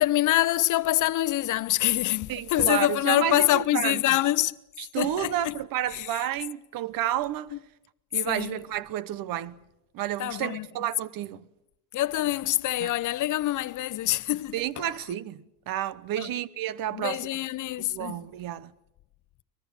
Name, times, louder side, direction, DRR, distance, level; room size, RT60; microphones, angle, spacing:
voice 1, 0.0-4.6 5.0-5.5 5.9-6.1 8.2-8.6 10.2-10.7 11.9-14.8 16.2-16.3 16.9-18.2, left 14 dB, 55° left, 0.8 m, -25 dB
voice 2, 2.3-4.0 4.8-7.6 8.1-9.6 9.9-11.4 12.8-12.9 14.5-17.4 17.8-18.7, right 12 dB, 65° right, 1.0 m, -31 dB
23.0 x 21.0 x 7.3 m
cardioid pair, 105°, 37 cm